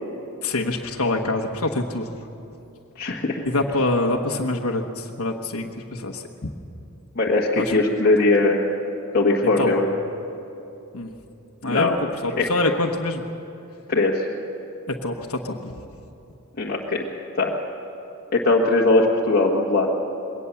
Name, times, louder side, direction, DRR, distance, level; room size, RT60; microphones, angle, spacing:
voice 1, 0.4-2.1 3.4-6.2 7.6-7.7 9.6-9.8 10.9-11.1 11.6-13.2 14.9-15.7, left 2 dB, 85° left, 1 dB, 1.2 m, -25 dB
voice 2, 3.0-3.4 7.1-8.6 9.1-9.9 11.6-12.0 12.4-12.5 13.9-14.2 16.6-17.1 17.4-17.5 18.3-19.9, left 2 dB, 45° left, -4 dB, 1.5 m, -20 dB
21.5 x 18.0 x 7.1 m, 2.8 s
head